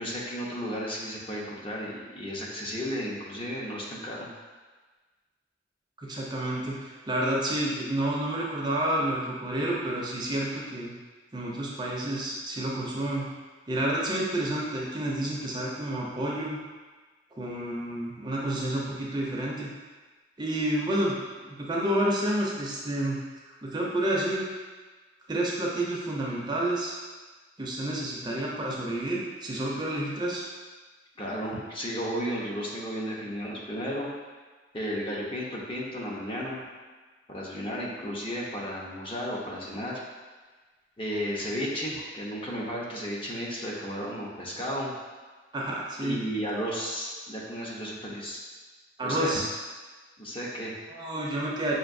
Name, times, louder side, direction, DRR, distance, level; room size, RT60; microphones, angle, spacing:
voice 1, 0.0-4.3 31.2-34.1 34.7-36.6 37.3-40.0 41.0-44.9 46.0-48.4 49.0-49.4 50.2-50.7, equal, 30° left, -4 dB, 0.7 m, -33 dB
voice 2, 6.0-10.9 11.3-13.3 13.7-16.6 17.4-19.7 20.4-21.2 21.4-23.2 23.6-24.5 25.3-26.9 27.6-30.4 45.5-46.2 49.0-49.5 50.9-51.7, right 1 dB, 25° right, -3 dB, 0.5 m, -29 dB
5.8 x 2.6 x 2.6 m, 1.3 s
head